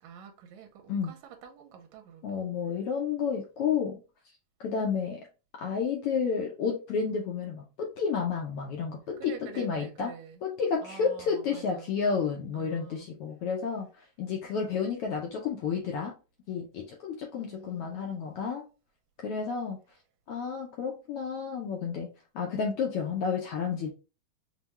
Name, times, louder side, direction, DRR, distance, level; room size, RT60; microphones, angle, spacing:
voice 1, 0.0-2.5 9.2-10.4 10.8-11.9 12.5-13.1 17.3-18.2, right 7 dB, 80° right, 2.0 m, -48 dB
voice 2, 2.2-4.0 4.6-5.3 5.6-10.1 10.4-16.1 16.5-18.6 19.2-19.8 20.3-22.1 22.3-23.9, left 6 dB, 85° left, 1.2 m, -31 dB
5.7 x 2.2 x 3.0 m
omnidirectional pair, 3.3 m